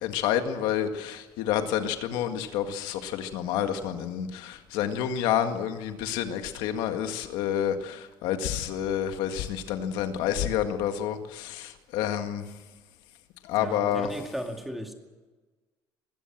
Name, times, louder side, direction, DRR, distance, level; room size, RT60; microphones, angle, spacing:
voice 1, 0.0-12.5 13.4-14.1, left 10 dB, 85° left, 7 dB, 1.9 m, -29 dB
voice 2, 13.6-14.9, equal, ahead, 3 dB, 2.3 m, -35 dB
21.5 x 17.0 x 7.5 m, 1.3 s
cardioid pair, 150°, 8 cm